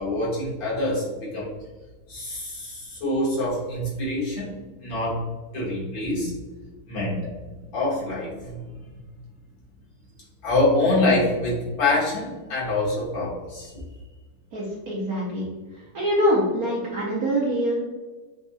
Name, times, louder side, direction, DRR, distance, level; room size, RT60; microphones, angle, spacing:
voice 1, 0.0-1.5 2.1-4.5 4.8-5.2 5.5-6.3 6.9-7.2 7.6-8.6 10.4-13.7, left 2 dB, 65° left, -7 dB, 2.3 m, -25 dB
voice 2, 14.5-15.4 15.9-17.8, equal, 65° right, -3 dB, 0.9 m, -24 dB
7.0 x 2.6 x 2.3 m, 1.3 s
omnidirectional pair, 2.2 m